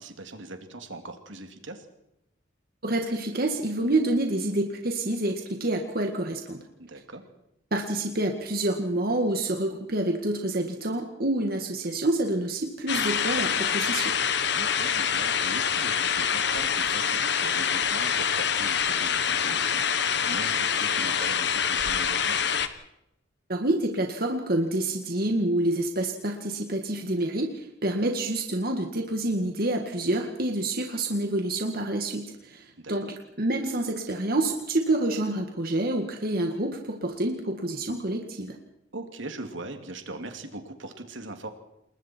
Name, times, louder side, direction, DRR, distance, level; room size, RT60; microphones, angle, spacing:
voice 1, 0.0-1.9 6.8-7.2 14.5-22.3 32.8-33.1 38.9-41.5, right 2 dB, 75° right, 5 dB, 2.8 m, -40 dB
voice 2, 2.8-6.6 7.7-14.1 23.5-38.6, right 1 dB, 50° right, 3 dB, 2.0 m, -27 dB
sound 1, 12.9-22.7, left 7 dB, 60° left, 1.3 m, -26 dB
29.0 x 21.0 x 4.6 m, 0.84 s
head